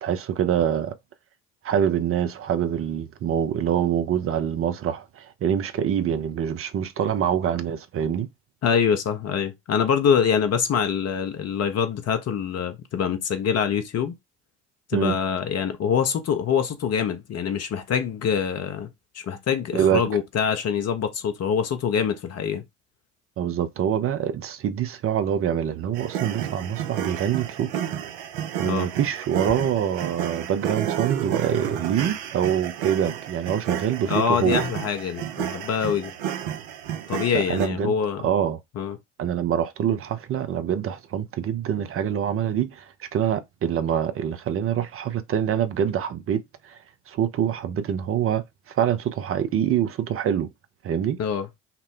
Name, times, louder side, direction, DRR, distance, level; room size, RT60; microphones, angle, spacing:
voice 1, 0.0-0.9 1.6-8.3 14.9-15.2 19.7-20.0 23.4-27.9 28.6-34.6 37.3-37.9 38.2-38.6 39.2-46.8 47.1-50.5 50.8-51.2, right 9 dB, 40° right, 0.6 m, -25 dB
voice 2, 8.6-14.1 14.9-18.9 19.1-22.6 28.6-28.9 34.1-36.1 37.1-38.3 38.7-39.0 51.2-51.5, left 7 dB, 45° left, 1.0 m, -24 dB
sound 1, 25.9-37.7, right 10 dB, 70° right, 0.7 m, -31 dB
5.8 x 2.2 x 3.7 m
hypercardioid pair, 60°, 36 cm